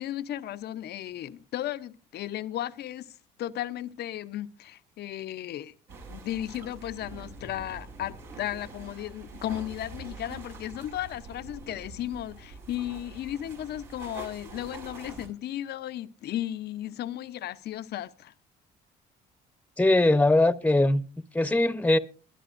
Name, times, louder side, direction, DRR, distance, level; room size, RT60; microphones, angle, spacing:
voice 1, 0.0-5.7 6.1-18.3, left 12 dB, 65° left, 0.7 m, -35 dB
sound 1, 5.9-15.3, right 3 dB, 80° right, 4.6 m, -45 dB
voice 2, 19.8-21.0 21.3-22.0, left 2 dB, 10° left, 0.9 m, -21 dB
22.0 x 11.0 x 2.5 m
supercardioid pair, 65°, 18 cm